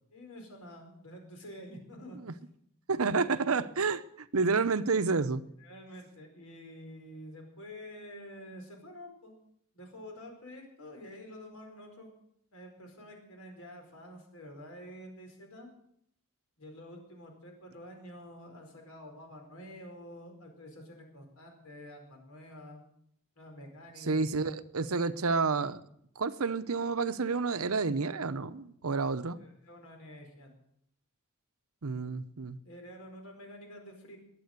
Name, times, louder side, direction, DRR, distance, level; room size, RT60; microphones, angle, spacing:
voice 1, 0.1-2.2 5.6-9.3 9.7-12.1 12.5-15.7 16.6-22.8 23.4-24.2 29.4-30.5 32.6-34.2, equal, 85° left, 3 dB, 4.8 m, -48 dB
voice 2, 2.9-4.0 4.3-5.4 24.1-25.8 26.2-29.4 31.8-32.6, right 4 dB, 80° right, 12 dB, 0.8 m, -29 dB
21.0 x 7.9 x 6.7 m, 0.71 s
head